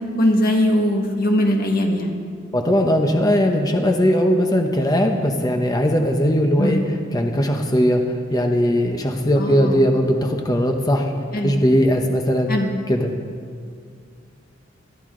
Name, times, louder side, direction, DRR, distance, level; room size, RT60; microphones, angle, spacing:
voice 1, 0.2-2.2 6.6-6.8 9.4-9.8 11.3-11.6 12.5-12.7, left 1 dB, 50° left, 2 dB, 1.8 m, -20 dB
voice 2, 2.5-11.1 11.4-12.5 12.9-13.1, equal, 20° left, 3 dB, 0.9 m, -19 dB
21.0 x 12.5 x 3.8 m, 2.2 s
head